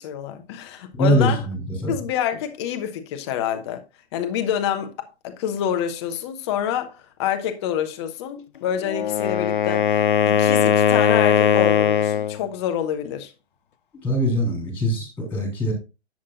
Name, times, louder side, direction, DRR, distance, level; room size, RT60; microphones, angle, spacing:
voice 1, 0.0-1.5 1.9-3.8 4.1-13.3, left 9 dB, 25° left, 1.0 m, -27 dB
voice 2, 0.9-1.6 1.8-1.9 13.9-15.7, equal, 5° left, 3.6 m, -22 dB
Wind instrument woodwind instrument, 8.8-12.4, left 8 dB, 50° left, 0.5 m, -19 dB
11.0 x 7.6 x 2.5 m
figure-of-eight pair, 125°, 34 cm